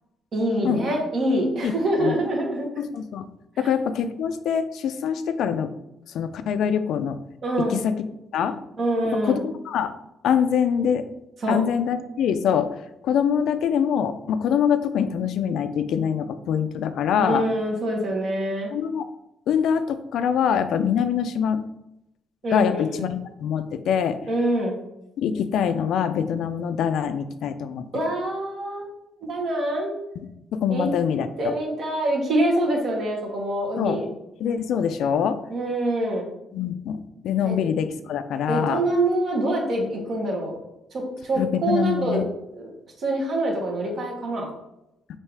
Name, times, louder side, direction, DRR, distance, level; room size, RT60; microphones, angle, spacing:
voice 1, 0.3-2.7 7.4-7.8 8.8-9.4 11.4-11.6 17.2-18.7 22.4-22.8 24.3-24.8 27.9-28.9 29.2-29.9 30.7-30.9 31.4-34.0 35.5-36.3 37.4-37.5 38.5-40.6 40.9-42.2 42.5-42.7 43.0-44.5, right 1 dB, 60° right, 0 dB, 1.2 m, -25 dB
voice 2, 2.8-3.3 3.6-5.7 6.1-7.2 7.7-7.9 8.3-8.6 9.2-9.9 10.2-11.1 11.5-12.7 13.0-17.5 18.7-19.0 19.5-21.6 22.5-24.2 25.2-27.9 30.2-30.3 30.5-31.5 33.8-34.0 34.4-35.4 36.5-38.8 41.4-42.2, left 8 dB, 80° left, 11 dB, 0.3 m, -24 dB
3.3 x 2.7 x 4.6 m, 0.87 s
cardioid pair, 90°, 0 cm